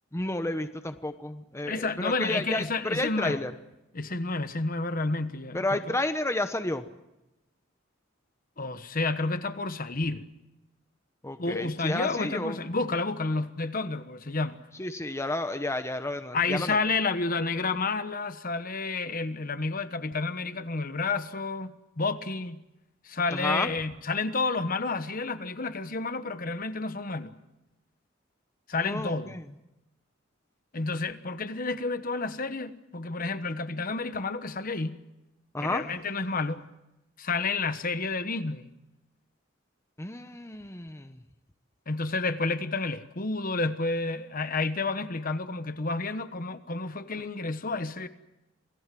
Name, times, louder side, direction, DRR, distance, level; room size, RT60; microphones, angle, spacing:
voice 1, 0.1-3.5 5.5-6.8 11.2-12.6 14.8-16.8 23.3-23.7 28.8-29.4 35.5-35.8 40.0-41.2, left 2 dB, 15° left, 1.0 m, -31 dB
voice 2, 1.6-3.4 3.9-5.9 8.6-10.2 11.4-14.7 16.3-22.6 23.0-27.3 28.7-29.4 30.7-35.0 35.6-36.7 37.2-38.7 41.9-48.1, left 3 dB, 45° left, 1.2 m, -30 dB
27.5 x 18.5 x 7.7 m
head